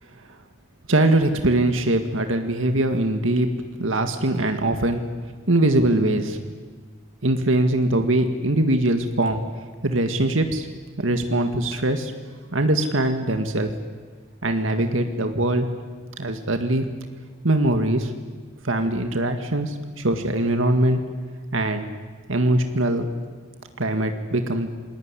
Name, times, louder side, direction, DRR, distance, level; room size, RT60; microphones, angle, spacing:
voice 1, 0.9-3.5 3.8-5.0 5.5-6.4 7.2-9.4 9.8-10.7 11.0-12.1 12.5-13.7 14.4-15.7 16.2-16.9 17.4-18.1 18.6-21.0 21.5-21.9 22.3-23.1 23.8-24.7, right 1 dB, 85° right, 6 dB, 2.0 m, -22 dB
27.5 x 20.5 x 9.9 m, 1.5 s
head